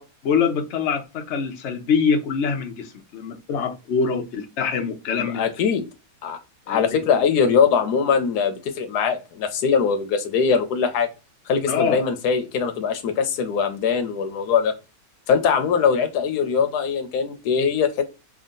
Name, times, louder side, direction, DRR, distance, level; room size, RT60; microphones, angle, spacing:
voice 1, 0.2-5.4 6.7-7.0 11.7-12.0, left 5 dB, 55° left, 1.0 m, -24 dB
voice 2, 5.2-5.9 6.2-6.4 6.7-11.1 11.5-14.7 15.3-18.0, left 6 dB, 85° left, 1.2 m, -21 dB
3.6 x 2.2 x 3.7 m
omnidirectional pair, 1.7 m